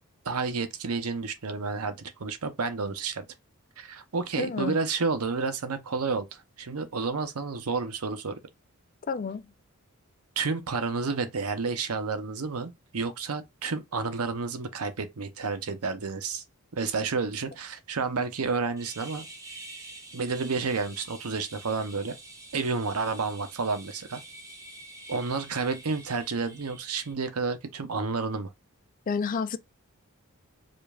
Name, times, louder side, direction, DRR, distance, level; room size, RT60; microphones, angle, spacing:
voice 1, 0.3-3.2 3.8-8.4 10.4-16.4 16.7-19.3 20.1-22.2 22.5-24.2 25.1-28.5, right 4 dB, 80° right, 0.7 m, -30 dB
voice 2, 4.4-4.8 9.1-9.5 29.1-29.6, left 5 dB, 40° left, 0.4 m, -30 dB
sound 1, 18.8-27.1, right 2 dB, 15° right, 0.8 m, -47 dB
5.0 x 2.5 x 2.3 m
head